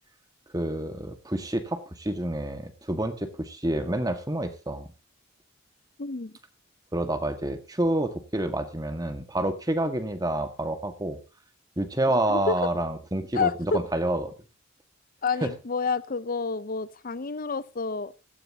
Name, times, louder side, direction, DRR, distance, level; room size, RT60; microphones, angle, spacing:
voice 1, 0.5-4.9 6.9-11.2 11.8-14.3 15.4-15.5, right 1 dB, 20° right, 1.8 m, -28 dB
voice 2, 6.0-6.4 12.3-12.6 13.3-13.8 15.2-18.1, left 4 dB, 45° left, 0.7 m, -29 dB
16.5 x 14.0 x 2.9 m
head